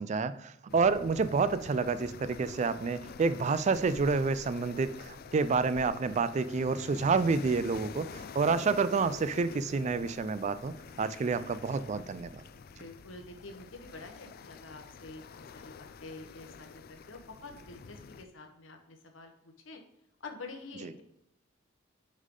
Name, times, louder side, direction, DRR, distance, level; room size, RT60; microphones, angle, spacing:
voice 1, 0.0-12.3, right 4 dB, 35° right, 14 dB, 0.3 m, -29 dB
sound 1, 0.7-18.3, left 5 dB, 50° left, 0.3 m, -47 dB
voice 2, 12.7-19.8 20.2-21.0, left 3 dB, 80° left, 5 dB, 1.2 m, -48 dB
6.4 x 5.5 x 3.8 m, 0.78 s
head